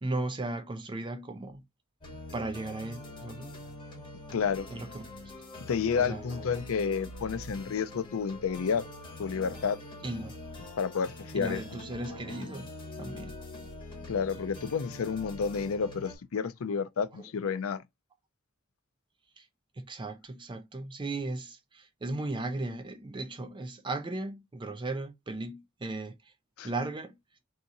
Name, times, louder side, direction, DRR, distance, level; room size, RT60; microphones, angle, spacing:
voice 1, 0.0-1.6 2.3-3.5 4.7-5.1 6.0-6.2 10.0-10.3 11.4-12.7 13.0-13.4 19.4-19.5 19.8-26.1 26.6-27.2, right 2 dB, 20° right, 0.4 m, -36 dB
sound 1, 2.0-16.2, left 2 dB, 25° left, 1.6 m, -44 dB
voice 2, 4.3-4.7 5.7-8.8 9.2-9.8 10.8-11.6 14.1-17.8 26.6-26.7, left 6 dB, 70° left, 0.4 m, -30 dB
3.6 x 2.8 x 3.9 m
head